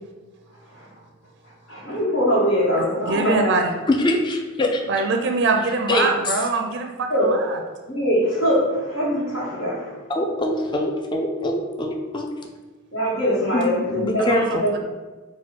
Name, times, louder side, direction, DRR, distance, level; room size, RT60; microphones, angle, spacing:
voice 1, 1.7-3.6 7.1-7.3 7.9-10.0 12.9-14.7, equal, 70° left, -9 dB, 1.2 m, -22 dB
voice 2, 3.1-3.7 4.9-7.6 14.2-14.8, right 3 dB, 55° right, 4 dB, 0.4 m, -23 dB
voice 3, 3.9-4.8 5.9-6.3 10.1-12.3 13.5-14.6, left 1 dB, 20° left, 2 dB, 0.4 m, -23 dB
4.3 x 2.2 x 4.4 m, 1.3 s
head